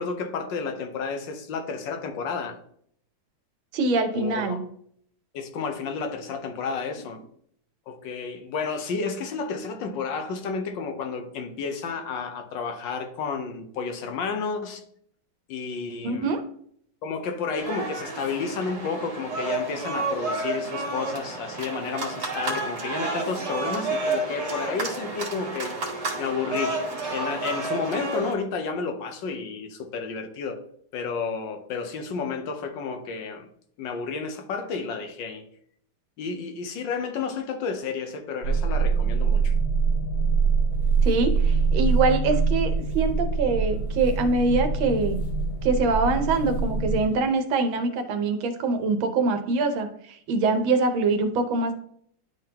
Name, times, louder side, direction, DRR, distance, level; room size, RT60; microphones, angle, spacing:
voice 1, 0.0-2.6 4.1-4.6 5.3-7.2 7.9-14.8 15.5-16.3 17.0-25.8 26.2-30.6 30.9-33.5 33.8-35.4 36.2-39.5, left 5 dB, 70° left, 1.4 m, -31 dB
voice 2, 3.7-4.6 16.0-16.4 41.0-45.2 45.6-51.7, right 3 dB, 85° right, 1.6 m, -24 dB
sound 1, 17.6-28.3, right 2 dB, 60° right, 2.0 m, -30 dB
sound 2, 38.4-47.0, right 5 dB, 90° left, 1.8 m, -24 dB
sound 3, 40.7-47.2, equal, 30° left, 1.1 m, -45 dB
11.0 x 3.7 x 2.8 m
omnidirectional pair, 2.1 m